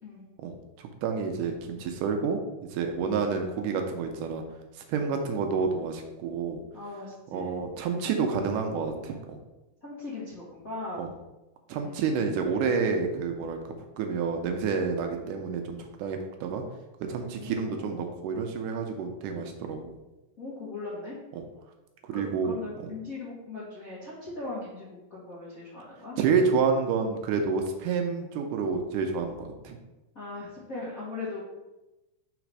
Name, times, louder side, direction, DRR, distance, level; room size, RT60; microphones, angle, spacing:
voice 1, 0.4-4.4 4.8-6.6 7.3-9.4 11.0-11.1 11.7-13.6 14.0-16.6 17.0-20.0 21.3-21.4 22.1-22.6 26.2-29.8, right 5 dB, 80° right, 4 dB, 2.1 m, -29 dB
voice 2, 6.7-7.6 9.8-11.0 11.7-12.0 15.1-15.3 17.4-18.1 20.4-21.2 22.1-26.2 30.1-31.4, left 3 dB, 55° left, -9 dB, 0.9 m, -39 dB
5.0 x 4.0 x 4.7 m, 1.0 s
omnidirectional pair, 3.8 m